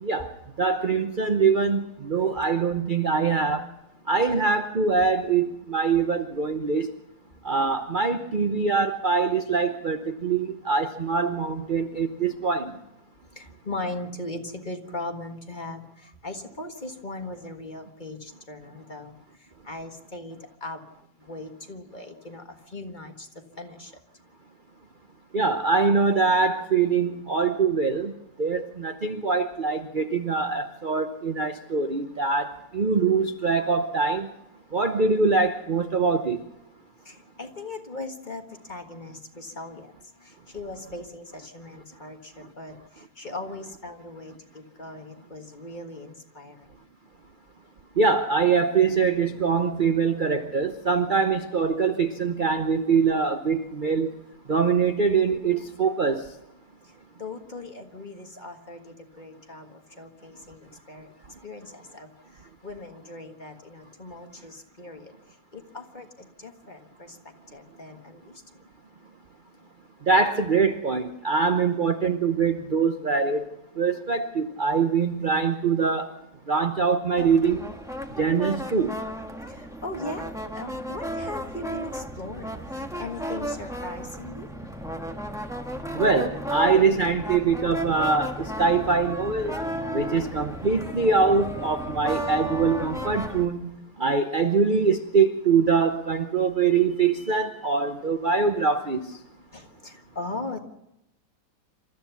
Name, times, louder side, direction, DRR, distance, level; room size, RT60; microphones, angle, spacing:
voice 1, 0.0-3.7 4.1-6.9 7.4-12.7 25.3-28.1 28.4-34.3 34.7-36.4 48.0-54.1 54.5-56.2 70.1-73.4 73.8-76.1 76.5-77.6 78.2-79.0 85.9-89.6 89.9-99.1, right 5 dB, 40° right, 0.8 m, -23 dB
voice 2, 13.3-19.1 19.6-20.8 21.2-23.3 23.6-23.9 37.0-46.7 57.2-61.1 61.4-65.1 65.5-67.2 67.5-68.3 79.5-84.5 99.5-100.6, left 2 dB, 25° left, 1.5 m, -39 dB
sound 1, 77.2-93.5, right 1 dB, ahead, 1.5 m, -34 dB
27.5 x 13.5 x 7.0 m
omnidirectional pair, 2.0 m